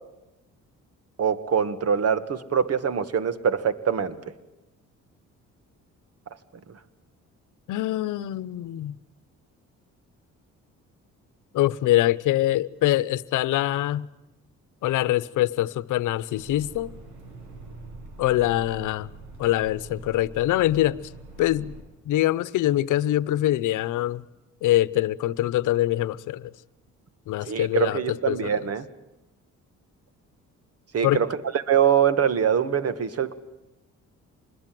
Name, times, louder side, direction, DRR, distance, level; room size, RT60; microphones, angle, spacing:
voice 1, 1.2-4.2 27.5-28.9 30.9-31.4 31.7-33.3, right 7 dB, 55° right, 2.1 m, -23 dB
voice 2, 7.7-8.9 11.5-14.1 14.8-16.9 18.2-19.1 19.4-21.0 21.4-21.8 22.1-24.2 24.6-26.5 27.3-28.7 31.0-31.2, left 14 dB, 85° left, 0.9 m, -24 dB
sound 1, 16.3-21.8, right 2 dB, 90° right, 6.7 m, -44 dB
25.5 x 21.5 x 7.7 m
cardioid pair, 90°, 30 cm